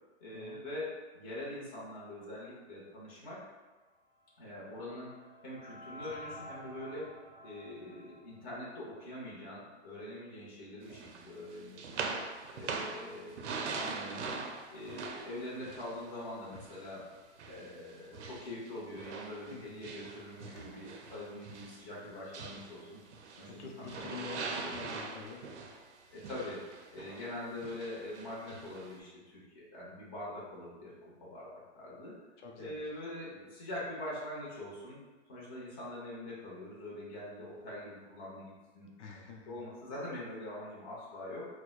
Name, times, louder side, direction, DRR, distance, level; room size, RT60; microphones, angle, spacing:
voice 1, 0.2-3.4 4.4-5.1 5.4-7.2 7.4-12.2 12.5-13.4 13.8-14.4 14.7-17.0 17.5-23.0 23.4-24.7 26.1-26.6 26.9-32.1 32.6-35.0 35.3-38.9 39.5-41.5, left 1 dB, 25° left, -7 dB, 0.9 m, -44 dB
sound 1, 4.1-9.3, left 1 dB, 25° right, 0.5 m, -51 dB
sound 2, 10.9-17.0 17.4-23.6 23.9-29.0, right 4 dB, 80° right, 0.6 m, -42 dB
voice 2, 19.5-19.9 23.6-25.4 32.4-32.8 39.0-39.6, left 5 dB, 90° left, 1 dB, 0.6 m, -47 dB
4.4 x 2.2 x 2.3 m, 1.3 s
hypercardioid pair, 160°, 34 cm